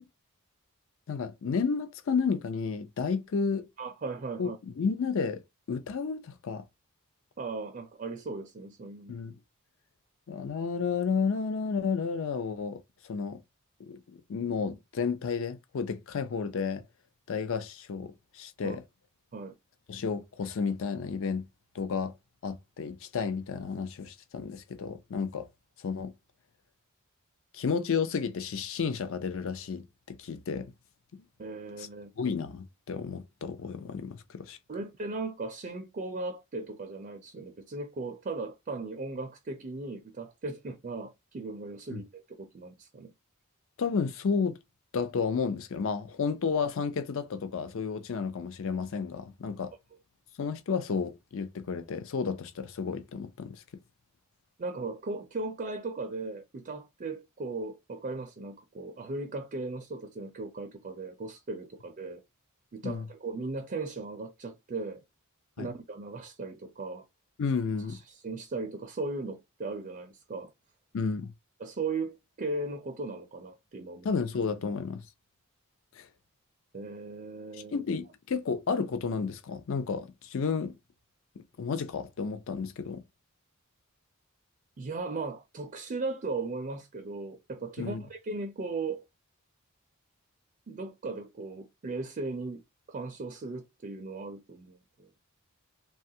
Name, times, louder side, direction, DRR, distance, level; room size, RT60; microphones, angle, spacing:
voice 1, 1.1-3.7 4.4-5.4 5.7-6.6 9.1-9.4 10.3-13.4 13.8-16.8 17.3-18.8 19.9-21.4 21.7-22.1 22.4-25.5 25.8-26.1 27.5-30.7 31.8-31.9 32.2-34.6 41.9-42.0 43.8-44.6 44.9-49.7 50.4-53.6 62.8-63.1 65.6-65.7 67.4-68.0 70.9-71.3 74.0-75.0 75.9-76.1 77.5-80.7 81.6-83.0 87.8-88.0, left 5 dB, 60° left, 0.4 m, -32 dB
voice 2, 3.8-4.6 7.4-9.2 18.6-18.8 19.3-19.5 31.4-32.1 34.7-43.1 54.6-62.2 62.7-65.0 65.6-67.1 67.9-70.5 71.6-74.1 76.7-77.8 84.8-89.0 90.7-92.6 92.9-95.1, right 3 dB, 35° right, 0.4 m, -37 dB
3.1 x 2.3 x 2.7 m
head